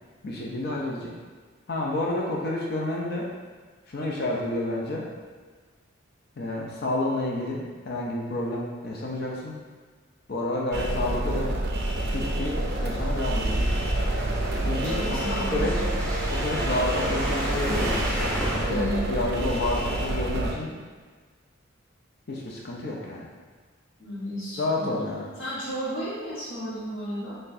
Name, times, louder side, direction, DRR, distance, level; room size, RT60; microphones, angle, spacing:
voice 1, 0.2-1.1 1.7-3.3 3.9-5.1 6.4-7.6 7.9-9.6 10.3-11.5 12.1-13.6 14.6-15.7 16.3-18.0 18.7-20.7 22.3-23.3 24.6-25.3, left 2 dB, 50° left, -3 dB, 0.5 m, -29 dB
sound 1, 10.7-20.5, right 1 dB, 50° right, 0.4 m, -28 dB
sound 2, 12.0-18.6, equal, 5° left, 0.8 m, -32 dB
voice 2, 14.8-16.4 18.7-19.0 24.0-24.9 25.4-27.3, equal, 70° left, -9 dB, 1.2 m, -33 dB
4.3 x 3.2 x 2.6 m, 1.5 s
head